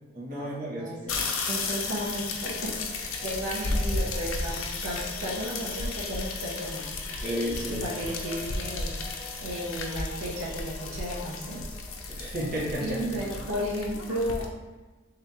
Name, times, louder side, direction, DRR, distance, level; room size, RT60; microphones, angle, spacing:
voice 1, 0.1-1.0 7.2-7.9 12.1-13.2, equal, 40° right, -5 dB, 1.1 m, -32 dB
sound 1, 1.1-14.5, left 3 dB, 70° left, 0.5 m, -34 dB
voice 2, 1.4-6.8 7.6-11.7 12.0-12.3 12.8-14.5, equal, 80° right, -4 dB, 0.7 m, -34 dB
sound 2, 1.5-13.1, left 1 dB, 10° left, 0.7 m, -49 dB
3.6 x 2.8 x 3.4 m, 1.2 s
head